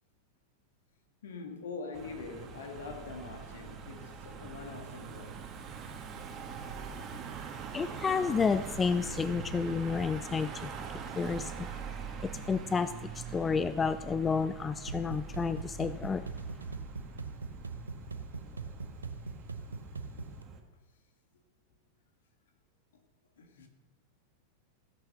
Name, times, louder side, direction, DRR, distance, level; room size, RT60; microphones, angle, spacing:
voice 1, 1.2-5.5 12.3-12.7 13.1-13.6 23.4-23.7, left 4 dB, 60° left, 1.9 m, -44 dB
Car passing by / Engine, 1.9-20.6, right 5 dB, 30° right, 1.6 m, -43 dB
voice 2, 7.7-11.7 12.2-16.3, left 5 dB, 15° left, 0.4 m, -31 dB
sound 1, 14.9-20.4, right 4 dB, 75° right, 0.9 m, -42 dB
15.5 x 8.1 x 6.5 m
figure-of-eight pair, 90°, 0 cm